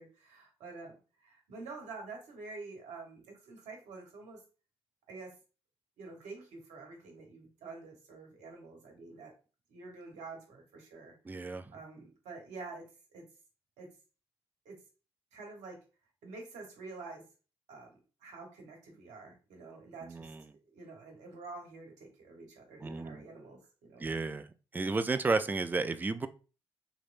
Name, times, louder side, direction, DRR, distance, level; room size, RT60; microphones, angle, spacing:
voice 1, 0.0-4.4 5.1-5.3 6.0-9.3 9.7-11.1 11.7-13.3 13.8-13.9 14.6-14.8 15.3-15.8 16.2-17.2 17.7-24.1, right 3 dB, 65° right, 2 dB, 1.0 m, -48 dB
voice 2, 11.3-11.7 20.1-20.4 22.8-23.2 24.0-24.5 24.7-26.3, right 3 dB, 15° right, 11 dB, 0.3 m, -32 dB
3.0 x 2.9 x 2.4 m, 0.35 s
hypercardioid pair, 45°, 12 cm